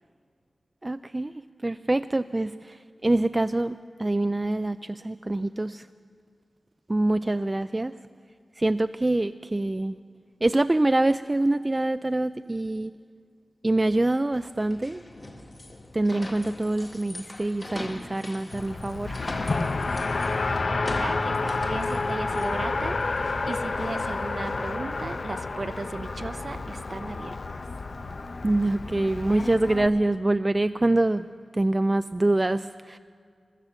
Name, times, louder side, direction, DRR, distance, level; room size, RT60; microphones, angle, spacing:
voice 1, 0.8-1.3 1.6-5.9 6.9-7.9 8.6-10.0 10.4-12.9 13.6-15.0 15.9-19.2 28.4-31.2 31.5-33.0, right 2 dB, 30° right, 12 dB, 0.4 m, -25 dB
sound 1, 14.3-24.7, left 1 dB, 35° left, 1.8 m, -42 dB
Race car auto racing, 18.5-29.9, left 3 dB, 60° left, 0.8 m, -30 dB
voice 2, 20.7-23.0 23.5-27.6, right 3 dB, 55° right, 11 dB, 0.8 m, -36 dB
15.0 x 13.0 x 7.1 m, 2.1 s
cardioid pair, 50°, 0 cm